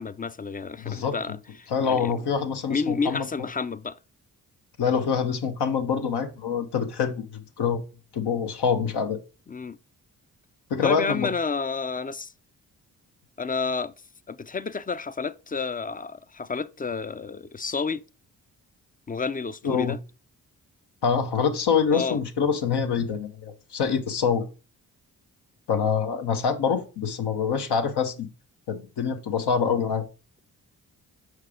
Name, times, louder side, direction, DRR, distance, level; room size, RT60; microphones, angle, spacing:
voice 1, 0.0-2.2 2.7-4.0 9.5-9.8 10.8-12.3 13.4-13.9 14.3-18.0 19.1-20.0 21.9-22.2, left 4 dB, 20° left, 0.5 m, -30 dB
voice 2, 0.8-1.4 1.7-3.3 4.8-7.8 8.1-9.2 10.7-11.3 19.6-20.0 21.0-24.4 25.7-28.3 28.7-30.0, left 6 dB, 70° left, 1.2 m, -25 dB
5.9 x 4.6 x 4.9 m
supercardioid pair, 45°, 41 cm